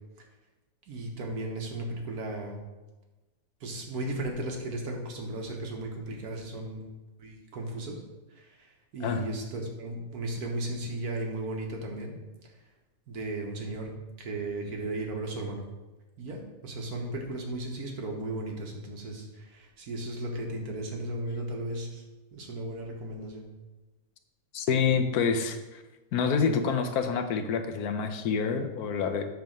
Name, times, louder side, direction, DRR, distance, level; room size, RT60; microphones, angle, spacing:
voice 1, 0.9-2.6 3.6-6.9 7.2-8.0 8.3-12.2 13.1-13.9 14.2-15.6 16.2-22.0 22.3-23.5, right 1 dB, 80° right, 1 dB, 1.7 m, -35 dB
voice 2, 24.5-25.8 26.1-29.2, left 6 dB, 90° left, 7 dB, 1.3 m, -27 dB
8.2 x 3.5 x 6.4 m, 1.1 s
omnidirectional pair, 1.6 m